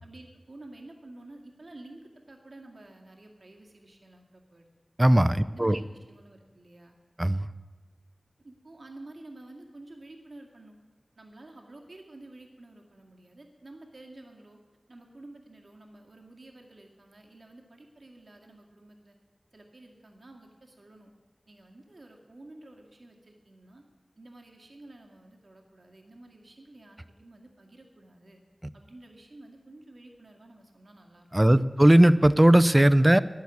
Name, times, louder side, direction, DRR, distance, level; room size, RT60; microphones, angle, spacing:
voice 1, 0.0-4.7 5.5-6.9 8.4-10.8 11.2-14.6 14.9-19.2 19.5-21.1 21.5-23.8 24.2-28.4 28.7-31.6, right 2 dB, 70° right, 1 dB, 2.1 m, -50 dB
voice 2, 5.0-5.8 7.2-7.5 31.3-33.2, right 1 dB, 20° right, 16 dB, 0.5 m, -18 dB
10.5 x 10.5 x 8.4 m, 1.4 s
wide cardioid pair, 60°, 0 cm